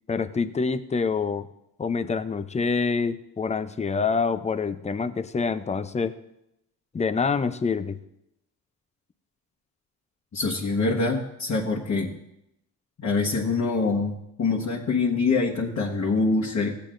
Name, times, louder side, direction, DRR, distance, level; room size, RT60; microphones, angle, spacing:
voice 1, 0.1-1.5 1.8-6.2 6.9-8.0, left 5 dB, 15° left, 11 dB, 0.5 m, -26 dB
voice 2, 10.3-12.1 13.0-16.7, left 3 dB, 40° left, -3 dB, 1.4 m, -25 dB
15.5 x 8.3 x 2.5 m, 0.83 s
cardioid pair, 90°, 40 cm